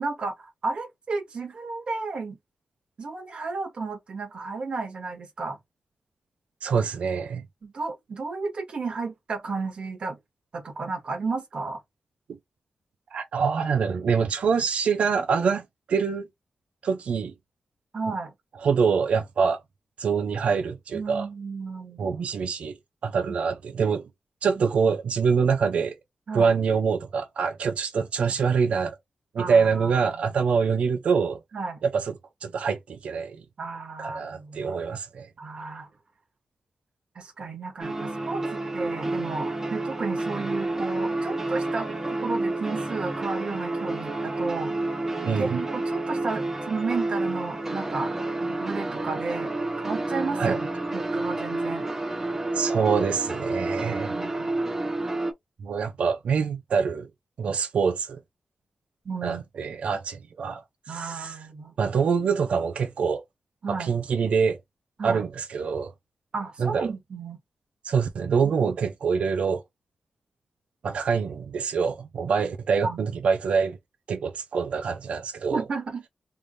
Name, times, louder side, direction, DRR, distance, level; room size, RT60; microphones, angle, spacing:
voice 1, 0.0-2.4 3.0-5.6 7.6-10.2 10.5-11.8 17.9-18.3 20.9-22.2 23.3-23.4 26.3-26.5 29.4-30.6 31.5-31.8 33.6-34.8 35.4-35.9 37.2-44.7 45.2-48.1 48.4-51.9 54.0-54.5 59.1-59.4 60.9-61.7 63.6-63.9 65.0-65.2 66.3-67.4 68.6-68.7 72.8-73.0 75.5-76.0, right 4 dB, 55° right, 1.8 m, -33 dB
voice 2, 6.6-7.4 13.1-15.6 15.9-16.3 16.8-17.3 18.6-19.6 20.0-21.3 22.0-22.8 23.0-24.0 24.4-25.9 26.3-29.0 29.3-31.4 31.8-32.1 32.4-33.4 34.0-35.3 45.2-45.6 50.4-50.6 52.5-54.2 55.6-57.1 57.4-58.2 59.2-60.6 60.9-61.4 61.8-63.2 63.7-64.6 65.0-65.9 66.6-66.9 67.8-69.6 70.8-73.8 74.1-75.6, right 6 dB, 85° right, 0.8 m, -25 dB
sound 1, 37.8-55.3, right 2 dB, 20° right, 0.8 m, -29 dB
3.4 x 3.4 x 2.7 m
wide cardioid pair, 115°, 2 cm